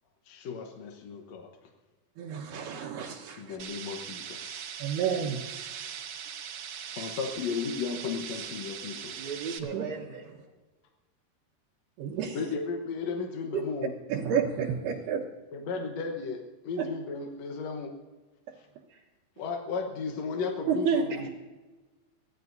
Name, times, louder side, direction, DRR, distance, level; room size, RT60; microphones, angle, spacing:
voice 1, 0.3-1.5 3.4-4.6 7.0-9.2 12.3-13.9 15.5-17.9 19.4-21.3, left 5 dB, 65° left, 2 dB, 1.7 m, -35 dB
voice 2, 2.2-3.6 4.8-5.4 9.7-9.8 12.0-12.4 14.1-15.2 16.8-16.9 20.7-21.0, right 7 dB, 85° right, -5 dB, 3.4 m, -29 dB
sound 1, 3.6-9.6, right 8 dB, 70° right, 2.7 m, -40 dB
voice 3, 9.1-10.3 18.9-19.0 21.1-21.3, right 5 dB, 40° right, 0 dB, 2.4 m, -38 dB
24.5 x 17.0 x 2.7 m, 1.2 s
omnidirectional pair, 4.6 m